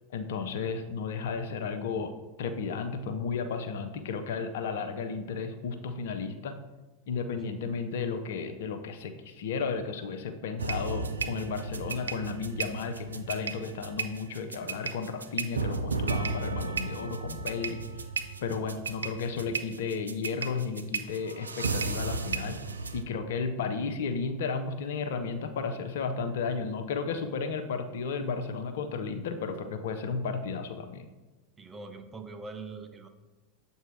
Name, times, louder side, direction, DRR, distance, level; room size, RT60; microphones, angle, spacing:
voice 1, 0.1-2.1 2.4-6.6 7.1-17.8 18.4-22.6 22.9-31.0, left 5 dB, 65° left, 7 dB, 0.5 m, -33 dB
sound 1, 10.6-23.0, right 4 dB, 85° right, 0.3 m, -34 dB
voice 2, 31.6-33.1, right 3 dB, 20° right, 6 dB, 0.6 m, -42 dB
7.5 x 2.7 x 4.7 m, 1.2 s
figure-of-eight pair, 85°, 0 cm